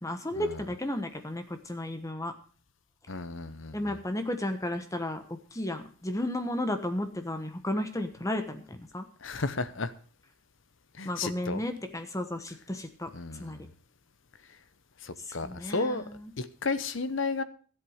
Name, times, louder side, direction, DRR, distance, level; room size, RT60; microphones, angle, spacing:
voice 1, 0.0-2.3 3.7-9.0 11.0-13.1 13.4-13.7 15.3-16.3, left 1 dB, 15° left, 8 dB, 1.2 m, -33 dB
voice 2, 3.1-4.0 9.2-9.9 11.0-11.6 13.1-13.6 15.0-16.0 16.4-17.4, left 3 dB, 60° left, 13 dB, 0.9 m, -33 dB
13.0 x 8.1 x 6.4 m, 0.42 s
head